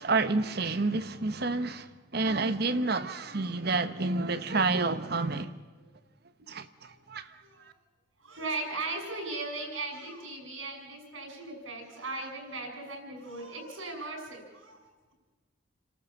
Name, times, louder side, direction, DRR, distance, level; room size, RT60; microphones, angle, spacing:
voice 1, 0.0-1.9 2.1-5.6 6.5-7.4, right 3 dB, 55° right, 1.0 m, -29 dB
voice 2, 3.3-3.8 4.3-4.4 5.8-5.9 6.8-7.0 7.4-7.7 8.2-14.8, right 3 dB, 85° right, 6.6 m, -38 dB
29.0 x 13.0 x 7.3 m
head